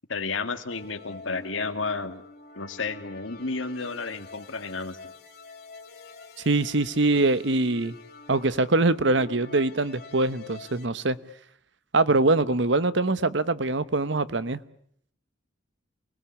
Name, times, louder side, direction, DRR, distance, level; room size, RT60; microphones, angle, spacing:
voice 1, 0.1-2.2 2.6-5.1, left 4 dB, 80° left, 8 dB, 2.1 m, -32 dB
sound 1, 0.7-10.9, left 3 dB, 50° left, 2.5 m, -47 dB
voice 2, 6.4-7.9 8.3-11.2 11.9-14.6, right 2 dB, 65° right, 15 dB, 1.1 m, -23 dB
29.0 x 20.5 x 8.5 m, 0.67 s
head